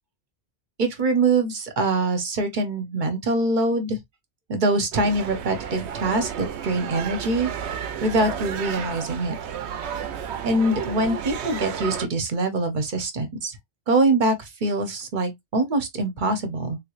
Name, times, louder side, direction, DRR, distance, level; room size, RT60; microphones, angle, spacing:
voice 1, 0.8-4.0 4.5-9.4 10.4-13.6 13.9-16.8, right 2 dB, 50° right, 0.9 m, -24 dB
sound 1, 4.9-12.1, right 8 dB, 90° right, 0.9 m, -32 dB
3.6 x 3.1 x 2.4 m
omnidirectional pair, 1.1 m